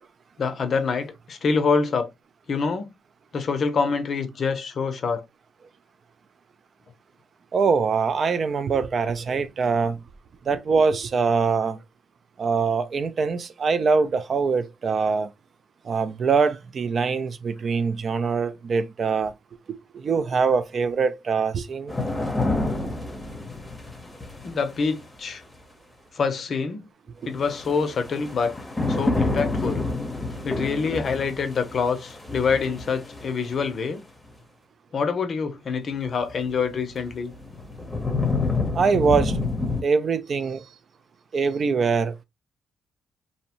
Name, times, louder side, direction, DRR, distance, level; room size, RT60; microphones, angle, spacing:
voice 1, 0.4-2.1 2.5-2.9 3.3-5.2 24.4-25.4 26.2-26.8 27.2-28.5 28.9-29.9 30.5-34.0 34.9-37.3, left 5 dB, 50° left, 0.5 m, -26 dB
voice 2, 7.5-10.0 10.5-11.8 12.4-15.3 15.9-19.3 19.9-21.9 38.7-39.4 39.8-40.7 41.3-42.1, right 5 dB, 50° right, 0.3 m, -23 dB
sound 1, 21.9-25.0 27.4-33.7 36.3-36.4 37.0-39.8, left 2 dB, 10° left, 0.8 m, -28 dB
2.7 x 2.1 x 2.8 m
cardioid pair, 90°, 0 cm